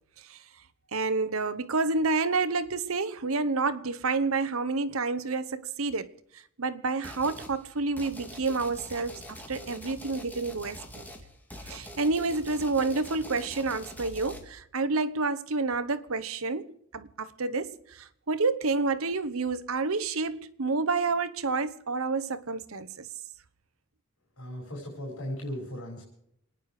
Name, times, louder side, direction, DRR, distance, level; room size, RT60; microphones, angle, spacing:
voice 1, 0.9-10.8 11.6-16.7 16.9-23.1, right 3 dB, 75° right, 1.0 m, -29 dB
sound 1, 7.0-7.6 8.0-14.4, left 1 dB, 10° left, 2.2 m, -44 dB
voice 2, 24.4-26.0, equal, 85° left, 5.6 m, -37 dB
28.0 x 10.0 x 4.9 m
head